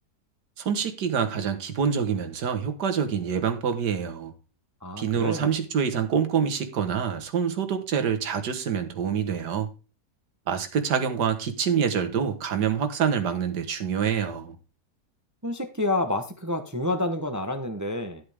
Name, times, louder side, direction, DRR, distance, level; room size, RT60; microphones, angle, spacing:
voice 1, 0.6-4.3 5.0-9.7 10.5-14.6, right 7 dB, 90° right, 1.8 m, -26 dB
voice 2, 4.8-5.5 15.4-18.2, left 1 dB, 15° right, 0.7 m, -29 dB
12.5 x 8.2 x 3.5 m
omnidirectional pair, 1.7 m